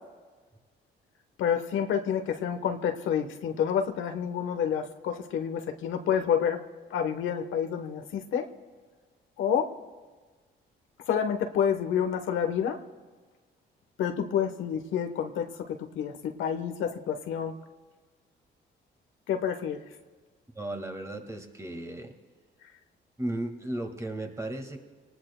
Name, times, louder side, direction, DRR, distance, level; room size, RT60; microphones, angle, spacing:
voice 1, 1.4-6.6 6.9-8.5 9.4-9.7 11.1-12.8 14.0-17.5 19.3-19.8, left 8 dB, 80° left, 7 dB, 1.1 m, -29 dB
voice 2, 20.6-22.1 23.2-24.8, right 1 dB, 15° right, 4 dB, 1.8 m, -35 dB
26.0 x 19.0 x 2.2 m, 1.4 s
cardioid pair, 90°, 20 cm